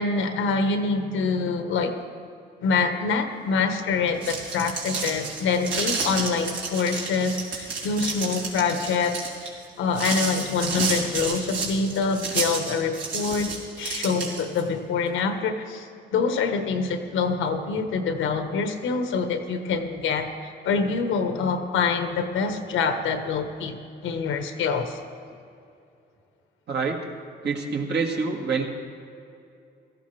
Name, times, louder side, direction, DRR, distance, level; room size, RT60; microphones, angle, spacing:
voice 1, 0.0-1.9 2.6-13.5 13.8-23.8 24.0-25.0, left 4 dB, 85° left, 7 dB, 1.2 m, -25 dB
sound 1, 4.0-14.6, right 4 dB, 85° right, 3.3 m, -30 dB
voice 2, 26.7-27.1 27.4-28.6, right 4 dB, 60° right, 1 dB, 1.8 m, -26 dB
17.0 x 14.0 x 3.3 m, 2.6 s
cardioid pair, 90°, 20 cm